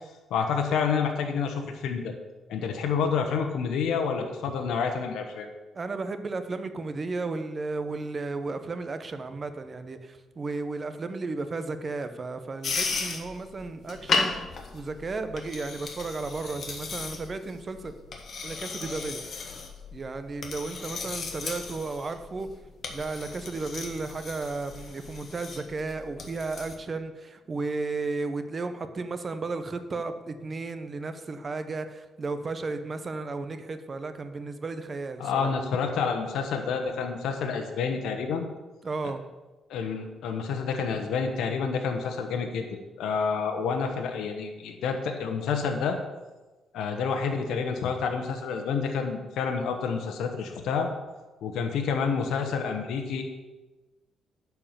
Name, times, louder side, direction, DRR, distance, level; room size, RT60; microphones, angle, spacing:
voice 1, 0.3-2.1 2.5-5.5 35.2-38.5 39.7-46.0 46.7-50.9 51.4-53.2, left 6 dB, 80° left, 4 dB, 1.0 m, -28 dB
voice 2, 5.7-17.9 18.4-19.2 19.9-22.5 22.9-35.5 38.8-39.3, right 3 dB, 35° right, 9 dB, 0.9 m, -34 dB
sound 1, 12.6-26.7, left 4 dB, 50° left, 1.6 m, -35 dB
10.5 x 4.7 x 7.3 m, 1.2 s
cardioid pair, 90°, 0 cm